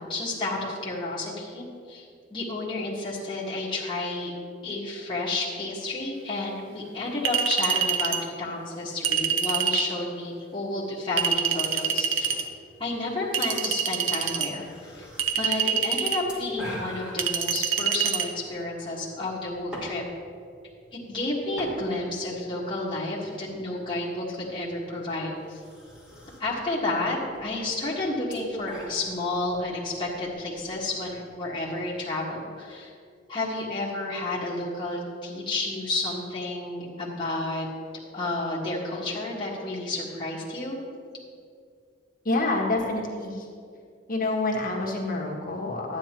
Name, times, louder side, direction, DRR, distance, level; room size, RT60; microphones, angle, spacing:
voice 1, 0.1-4.3 4.6-12.3 12.8-15.1 15.4-20.0 20.9-25.6 26.4-32.9 33.3-37.7 38.1-40.8, left 2 dB, 25° left, -7 dB, 1.6 m, -31 dB
Chink clink, 7.3-8.2 9.0-9.9 11.2-12.4 13.3-14.5 15.2-16.2 17.2-18.3, right 7 dB, 85° right, 0.7 m, -26 dB
sound 1, 12.2-31.9, equal, 5° right, 2.0 m, -46 dB
voice 2, 42.2-43.5 44.1-46.0, left 2 dB, 50° left, -2 dB, 1.6 m, -27 dB
12.0 x 9.5 x 3.0 m, 2.3 s
head